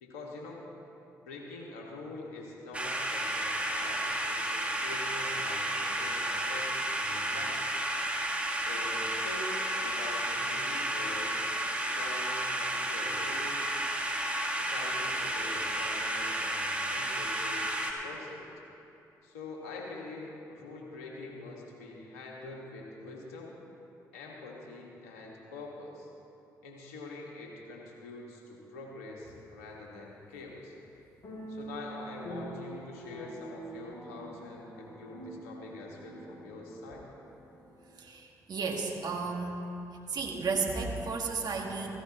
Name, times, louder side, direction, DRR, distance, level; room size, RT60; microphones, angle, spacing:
voice 1, 0.0-0.6 1.2-7.8 8.5-11.4 11.8-13.7 14.5-18.4 19.2-23.5 24.1-26.1 26.6-30.7 31.5-37.0, left 2 dB, 90° left, -1 dB, 1.5 m, -45 dB
sound 1, 2.7-17.9, right 1 dB, 15° right, 1.8 m, -32 dB
sound 2, 29.3-29.7 31.2-38.0, right 1 dB, 45° left, 3.2 m, -46 dB
voice 2, 38.0-39.6 40.1-41.9, right 4 dB, 55° right, 1 dB, 1.8 m, -33 dB
16.5 x 15.0 x 3.0 m, 2.7 s
hypercardioid pair, 45°, 8 cm